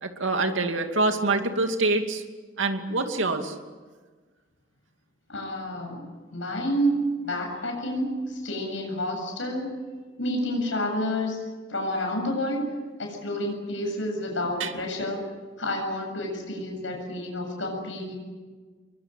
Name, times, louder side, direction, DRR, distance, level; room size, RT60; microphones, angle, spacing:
voice 1, 0.0-2.2 2.6-3.5 14.6-14.7, right 3 dB, 85° right, 5 dB, 2.5 m, -25 dB
voice 2, 5.3-7.0 7.2-9.7 10.2-11.4 11.7-15.2 15.6-18.2, equal, 75° left, 2 dB, 7.7 m, -29 dB
25.0 x 23.0 x 9.1 m, 1.4 s
head